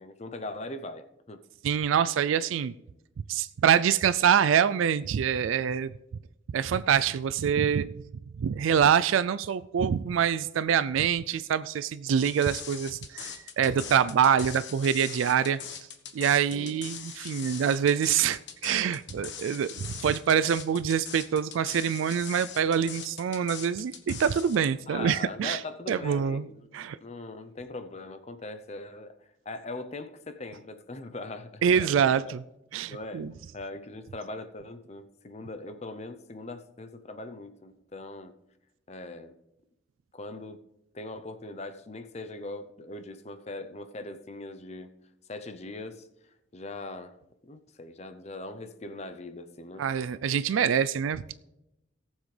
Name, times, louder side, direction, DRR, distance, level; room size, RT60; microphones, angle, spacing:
voice 1, 0.0-1.4 13.8-14.1 16.5-16.8 24.9-29.1 29.5-32.3 32.9-33.3 33.5-38.3 38.9-39.4 40.1-40.6 40.9-44.9 45.3-46.1 46.5-47.2 47.4-49.8 50.4-50.6, left 2 dB, 35° left, 9 dB, 0.6 m, -41 dB
voice 2, 1.6-2.7 3.3-5.9 6.5-7.9 8.4-15.8 16.1-25.6 25.9-26.5 26.7-27.0 31.6-32.4 32.7-33.3 49.8-51.3, right 8 dB, 90° right, 14 dB, 0.3 m, -25 dB
sound 1, 12.1-24.6, left 8 dB, 65° left, 1.2 m, -41 dB
18.0 x 7.2 x 3.3 m, 0.89 s
head